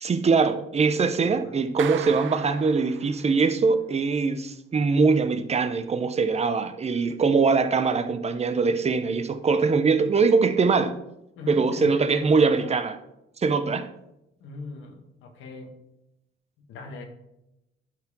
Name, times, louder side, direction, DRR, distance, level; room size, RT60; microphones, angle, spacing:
voice 1, 0.0-11.0 11.5-12.9 13.4-13.9, right 4 dB, 30° right, 0.7 m, -22 dB
Clapping, 1.8-3.5, right 11 dB, 75° right, 0.5 m, -37 dB
voice 2, 11.3-12.7 14.4-15.7 16.6-17.1, left 3 dB, 85° left, 1.4 m, -39 dB
11.5 x 4.7 x 3.7 m
cardioid pair, 90°, 20 cm